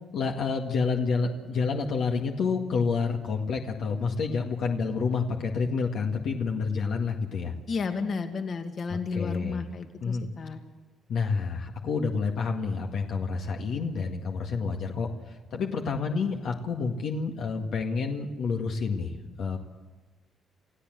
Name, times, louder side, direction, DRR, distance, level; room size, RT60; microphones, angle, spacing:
voice 1, 0.1-7.5 8.9-9.6 10.0-10.3 11.1-19.6, left 5 dB, 70° left, 2 dB, 1.9 m, -29 dB
voice 2, 7.7-10.6, left 4 dB, 50° left, 6 dB, 2.2 m, -32 dB
28.5 x 15.5 x 7.8 m, 1.3 s
cardioid pair, 90°, 0 cm